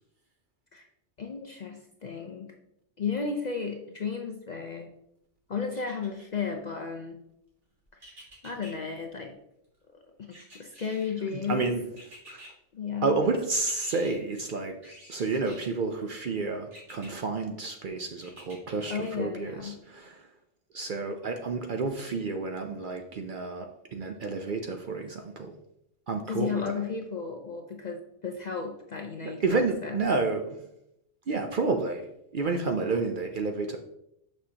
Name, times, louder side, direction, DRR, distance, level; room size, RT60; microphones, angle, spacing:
voice 1, 1.2-2.5 3.0-4.9 5.5-7.2 7.9-8.1 8.4-9.3 10.2-10.3 10.5-11.7 12.7-13.2 18.9-19.8 26.3-30.0, left 5 dB, 50° left, 3 dB, 0.5 m, -34 dB
sound 1, 5.7-6.5 8.0-8.7 10.3-11.3 12.0-12.5 13.5-14.2 14.8-15.8 16.7-17.1 18.2-19.1 19.6-19.7, equal, 70° right, 2.2 m, -50 dB
voice 2, 11.3-11.8 12.3-12.5 13.0-14.8 15.1-20.3 20.7-25.5 26.1-26.8 29.2-30.6 31.3-33.8, right 3 dB, 55° right, 5 dB, 0.6 m, -30 dB
6.2 x 6.1 x 2.8 m, 0.80 s
omnidirectional pair, 1.3 m